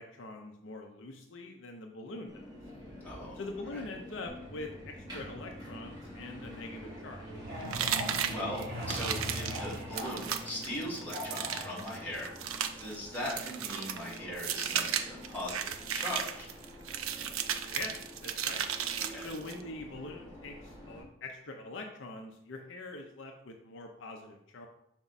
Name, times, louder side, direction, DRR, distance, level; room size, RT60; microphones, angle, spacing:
voice 1, 0.0-2.4 3.4-7.3 17.7-18.0 18.2-18.6 19.2-24.7, left 2 dB, 60° left, 3 dB, 0.6 m, -43 dB
Subway metro underground, 2.3-21.0, equal, 20° right, 2.5 m, -46 dB
voice 2, 3.0-3.9 8.0-12.3 12.8-16.5 19.0-19.3, left 1 dB, 10° left, -7 dB, 1.9 m, -40 dB
Truck, 4.3-16.6 17.8-18.0 18.4-18.5 18.9-19.2 19.5-19.6 20.1-20.2, equal, 50° right, 1.5 m, -44 dB
sound 1, 7.7-19.6, right 9 dB, 85° right, 0.5 m, -35 dB
6.0 x 4.4 x 4.0 m, 0.80 s
head